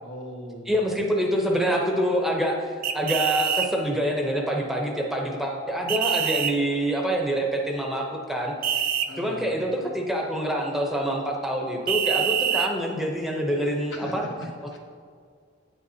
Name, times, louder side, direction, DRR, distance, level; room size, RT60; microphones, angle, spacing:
voice 1, 0.0-0.9 9.1-9.7 13.9-14.8, left 1 dB, 65° left, 0 dB, 1.1 m, -39 dB
voice 2, 0.7-8.5 9.2-14.2, equal, ahead, 0 dB, 0.7 m, -26 dB
sound 1, 2.8-3.7 5.9-6.5 8.6-9.1 11.9-12.7, right 8 dB, 50° right, 0.4 m, -25 dB
8.6 x 7.8 x 2.8 m, 2.1 s
head